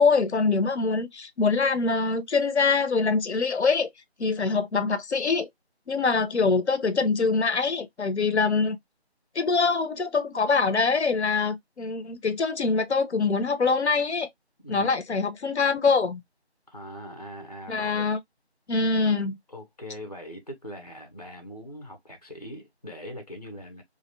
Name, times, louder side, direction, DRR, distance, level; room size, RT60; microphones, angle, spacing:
voice 1, 0.0-3.9 4.2-5.5 5.9-8.8 9.4-14.3 14.7-16.2 17.7-18.2 18.7-19.4, left 4 dB, 85° left, 0.6 m, -24 dB
voice 2, 16.7-18.1 19.5-23.8, equal, 35° left, 0.5 m, -41 dB
2.5 x 2.1 x 2.4 m
figure-of-eight pair, 170°, 33 cm